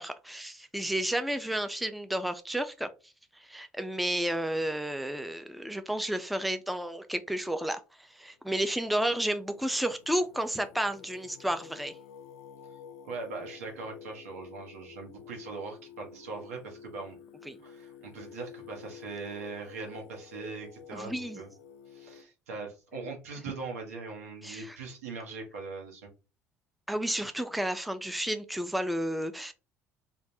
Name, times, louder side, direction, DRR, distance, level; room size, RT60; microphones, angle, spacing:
voice 1, 0.0-2.9 3.4-12.0 17.5-17.6 20.9-21.4 24.4-24.8 26.9-29.5, right 1 dB, ahead, 0.4 m, -32 dB
Singing, 8.4-22.2, left 8 dB, 75° left, 0.4 m, -51 dB
voice 2, 13.0-17.2 17.6-21.5 21.9-26.1, right 4 dB, 80° right, 1.0 m, -41 dB
3.1 x 2.3 x 2.7 m
hypercardioid pair, 55°, 8 cm